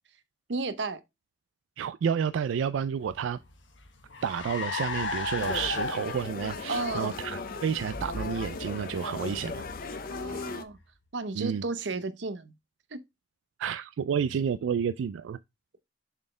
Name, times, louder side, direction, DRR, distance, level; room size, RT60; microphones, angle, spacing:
voice 1, 0.5-1.0 6.7-7.1 10.0-10.8 11.1-12.5 12.9-13.0, right 3 dB, 70° right, 0.7 m, -33 dB
voice 2, 1.8-3.4 4.2-10.0 11.3-11.6 13.6-15.4, right 7 dB, 90° right, 0.3 m, -30 dB
Car, 3.0-10.8, left 3 dB, 85° left, 1.3 m, -37 dB
sound 1, 5.4-10.6, left 4 dB, 50° left, 0.6 m, -37 dB
7.1 x 4.2 x 3.2 m
head